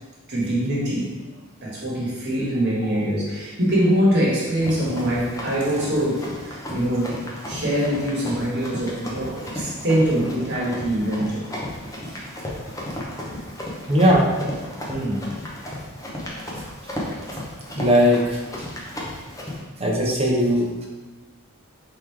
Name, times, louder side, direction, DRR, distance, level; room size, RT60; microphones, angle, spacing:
voice 1, 0.3-1.1 1.6-7.1 7.5-11.5 14.9-15.3, equal, 55° right, -5 dB, 1.4 m, -23 dB
Run, 4.6-19.6, left 1 dB, 15° left, 0.7 m, -34 dB
voice 2, 13.9-14.3 17.8-18.4 19.8-20.7, equal, 30° right, -2 dB, 0.8 m, -18 dB
3.7 x 3.1 x 4.5 m, 1.3 s
head